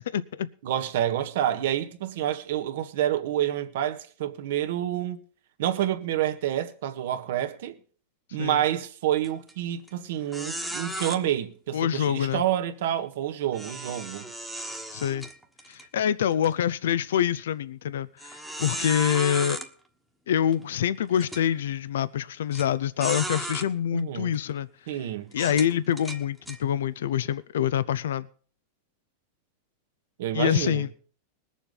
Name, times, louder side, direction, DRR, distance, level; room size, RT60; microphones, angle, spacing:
voice 1, 0.0-0.5 8.4-8.6 11.7-12.4 14.9-15.3 15.7-19.6 20.3-25.0 25.3-28.3 30.3-30.9, left 9 dB, 90° left, 0.5 m, -26 dB
voice 2, 0.6-5.2 5.6-7.7 8.3-14.3 23.9-24.3 24.9-25.6 30.2-30.8, right 11 dB, 70° right, 1.5 m, -28 dB
sound 1, 9.2-9.5 9.9-10.0 10.3-11.2 13.5-15.9 16.3-16.5 17.1-17.2 18.2-19.7 20.5-20.6 21.2-21.4 22.5-22.7 23.0-23.7 24.3-24.5 25.3-26.6, right 1 dB, ahead, 1.3 m, -35 dB
20.0 x 7.2 x 5.4 m
supercardioid pair, 150°, 0 cm